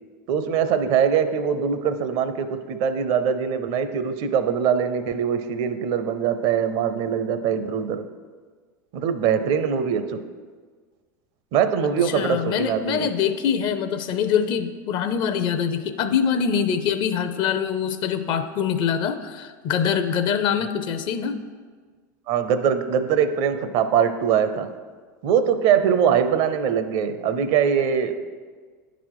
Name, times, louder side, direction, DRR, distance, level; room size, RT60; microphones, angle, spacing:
voice 1, 0.3-8.0 8.9-10.2 11.5-13.1 22.3-24.7 25.2-28.2, right 7 dB, 55° right, 10 dB, 0.6 m, -22 dB
voice 2, 12.1-21.4, left 7 dB, 50° left, 10 dB, 0.6 m, -24 dB
9.8 x 4.0 x 4.8 m, 1.5 s
hypercardioid pair, 100°, 10 cm